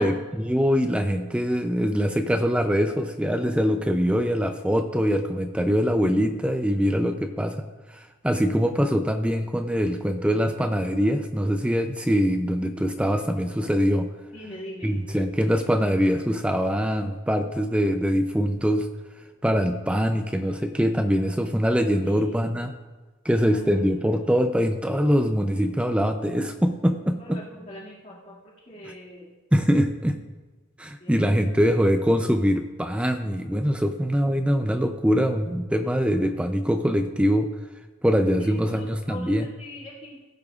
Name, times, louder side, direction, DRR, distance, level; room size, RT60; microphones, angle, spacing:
voice 1, 0.0-7.7 7.9-14.1 14.8-18.9 19.4-22.7 23.2-27.4 29.5-30.2 30.8-37.5 38.0-39.5, equal, 5° right, 6 dB, 0.4 m, -23 dB
voice 2, 14.3-15.0 22.0-22.3 23.3-23.4 27.2-28.3 28.7-29.3 31.0-31.2 38.7-40.2, left 1 dB, 35° left, -7 dB, 2.3 m, -41 dB
17.0 x 10.5 x 2.5 m, 1.3 s
head